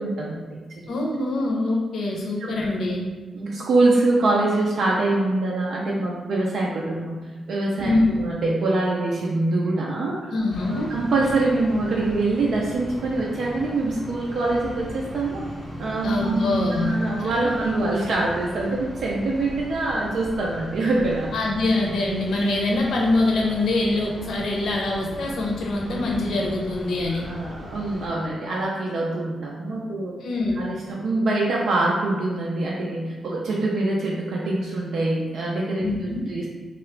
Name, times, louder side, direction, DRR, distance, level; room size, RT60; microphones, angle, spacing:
voice 1, 0.0-0.9 2.4-2.5 3.3-7.2 7.5-7.9 8.2-10.2 10.6-15.4 15.8-16.4 16.8-21.3 27.3-30.1 30.6-36.5, right 2 dB, 65° right, -4 dB, 0.4 m, -24 dB
voice 2, 0.9-3.0 7.8-8.2 10.3-10.9 16.0-16.9 17.2-17.6 21.3-27.3 30.2-30.7 35.8-36.2, left 2 dB, 65° left, -1 dB, 0.6 m, -24 dB
sound 1, 10.5-28.1, left 1 dB, 10° left, 0.5 m, -38 dB
2.8 x 2.4 x 3.2 m, 1.3 s
wide cardioid pair, 165°, 0 cm